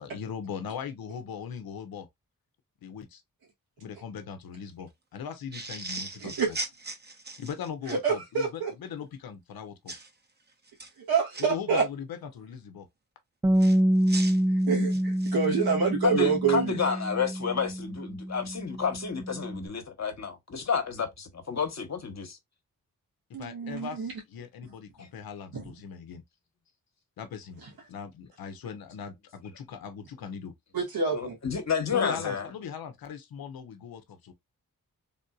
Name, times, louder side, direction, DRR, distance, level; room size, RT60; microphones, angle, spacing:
voice 1, 0.0-2.1 2.8-3.2 3.8-6.6 7.4-9.9 11.5-12.9 23.3-26.2 27.2-27.6 27.9-30.5 31.9-34.3, left 7 dB, 80° left, 0.7 m, -39 dB
sound 1, 5.5-8.0 9.9-10.1 10.7-11.4 13.6-15.5, right 2 dB, 30° right, 0.8 m, -38 dB
voice 2, 6.2-6.5 7.9-8.7 11.1-11.8 14.7-16.8 23.3-24.1 25.5-25.7 30.7-31.4, right 5 dB, 85° right, 1.6 m, -27 dB
Bass guitar, 13.4-19.7, equal, 10° right, 0.3 m, -27 dB
voice 3, 16.0-22.4 25.0-25.1 31.1-32.5, left 6 dB, 50° left, 1.1 m, -30 dB
3.6 x 2.6 x 2.3 m
cardioid pair, 45°, 35 cm